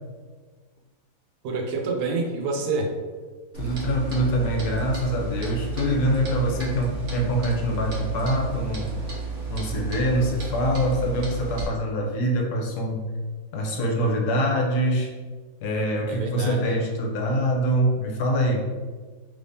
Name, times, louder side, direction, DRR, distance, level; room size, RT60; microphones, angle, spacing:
voice 1, 1.4-2.9 16.1-16.8, right 3 dB, 90° right, 1 dB, 1.2 m, -27 dB
Clock, 3.5-11.7, right 4 dB, 55° right, 0.9 m, -33 dB
voice 2, 3.6-8.9 9.5-13.0 13.5-15.1 15.6-18.7, equal, 75° left, 0 dB, 1.1 m, -24 dB
3.4 x 3.1 x 2.6 m, 1.4 s
omnidirectional pair, 1.8 m